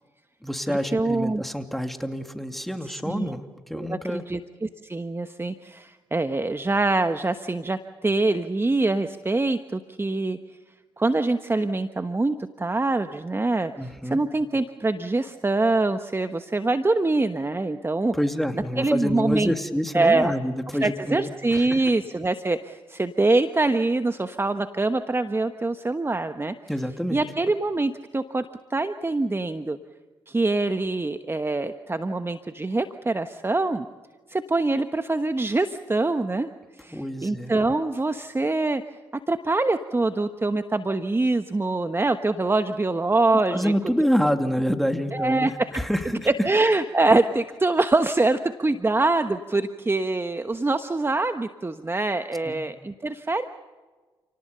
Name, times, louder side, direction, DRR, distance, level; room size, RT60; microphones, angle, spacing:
voice 1, 0.4-4.2 13.8-14.2 18.1-21.8 26.7-27.2 36.9-37.5 43.5-46.3 52.4-52.7, equal, ahead, 6 dB, 2.7 m, -27 dB
voice 2, 0.9-1.4 3.1-3.3 3.7-10.4 11.0-13.7 14.0-18.1 18.8-19.5 19.9-20.3 20.8-26.5 27.1-29.8 30.3-33.9 34.3-36.5 36.8-38.8 39.3-43.7 45.1-45.5 46.3-53.4, right 2 dB, 20° right, 9 dB, 1.1 m, -24 dB
28.5 x 18.5 x 6.8 m, 1.3 s
hypercardioid pair, 45°, 10 cm